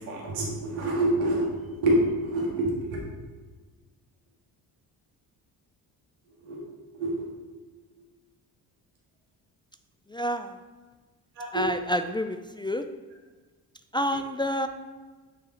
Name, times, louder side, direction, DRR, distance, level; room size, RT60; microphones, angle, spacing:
voice 1, 0.1-3.0 6.4-6.6 6.9-7.3 11.4-11.7, right 1 dB, 90° right, -3 dB, 1.8 m, -27 dB
voice 2, 10.1-10.5 11.5-12.9 13.9-14.7, equal, 10° left, 7 dB, 0.3 m, -28 dB
8.5 x 3.6 x 4.3 m, 1.4 s
supercardioid pair, 55°, 44 cm